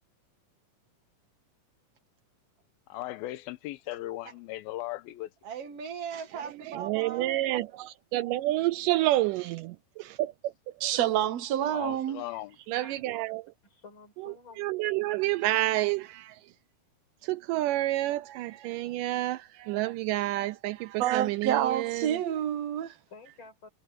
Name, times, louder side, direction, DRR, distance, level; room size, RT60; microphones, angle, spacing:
voice 1, 2.9-5.3 11.7-12.6, left 16 dB, 85° left, 2.7 m, -37 dB
voice 2, 5.4-7.3 9.4-9.5, right 7 dB, 50° right, 2.2 m, -39 dB
voice 3, 6.7-10.5 12.7-13.5 14.2-16.4 17.2-22.2, right 16 dB, 85° right, 1.9 m, -29 dB
voice 4, 10.8-12.2 21.0-23.0, right 11 dB, 65° right, 1.7 m, -28 dB
voice 5, 12.7-13.0 13.6-14.7 23.1-23.7, left 4 dB, 30° left, 5.8 m, -51 dB
omnidirectional pair, 4.2 m